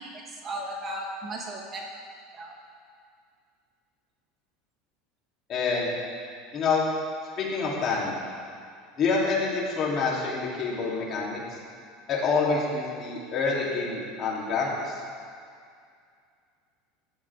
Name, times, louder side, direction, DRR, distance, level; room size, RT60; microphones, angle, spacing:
voice 1, 0.0-1.8 2.3-2.6, right 1 dB, 30° right, 0 dB, 1.6 m, -36 dB
voice 2, 5.5-5.9 6.5-6.9 7.4-8.2 9.0-11.6 12.1-15.0, left 4 dB, 40° left, -4 dB, 3.1 m, -27 dB
15.5 x 11.0 x 3.6 m, 2.2 s
supercardioid pair, 130°, 0 cm